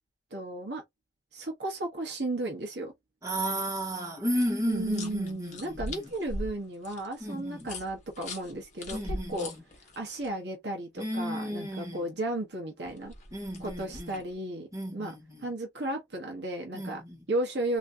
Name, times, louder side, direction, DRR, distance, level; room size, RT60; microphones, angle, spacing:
voice 1, 0.3-0.8 1.3-2.9 4.6-9.5 10.0-13.1 13.6-15.1 15.4-17.0 17.3-17.8, right 1 dB, 60° right, 1.2 m, -34 dB
voice 2, 3.2-6.1 7.2-7.7 8.9-9.6 11.0-12.1 13.3-14.2 14.7-15.5 16.7-17.2, equal, 15° right, 2.2 m, -33 dB
sound 1, 4.3-10.3 12.9-14.3, left 1 dB, 40° left, 1.1 m, -41 dB
3.6 x 3.1 x 2.7 m
head